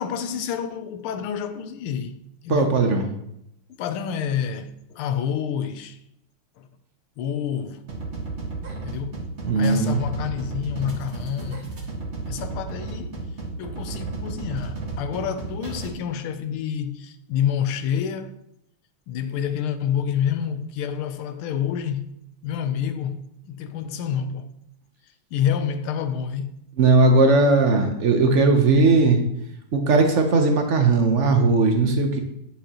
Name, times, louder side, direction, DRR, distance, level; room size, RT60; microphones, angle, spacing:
voice 1, 0.0-2.2 2.4-2.8 3.8-6.0 6.6-6.7 7.2-7.8 8.8-9.2 9.5-11.7 12.3-13.2 13.6-18.4 19.1-22.1 22.4-24.5 25.3-26.6, left 8 dB, 85° left, 1.5 m, -28 dB
voice 2, 2.5-3.1 9.5-10.0 26.8-29.2 29.7-32.2, right 3 dB, 60° right, 0.7 m, -18 dB
sound 1, 7.9-15.9, right 3 dB, 35° right, 1.5 m, -33 dB
9.1 x 7.0 x 2.9 m
omnidirectional pair, 2.3 m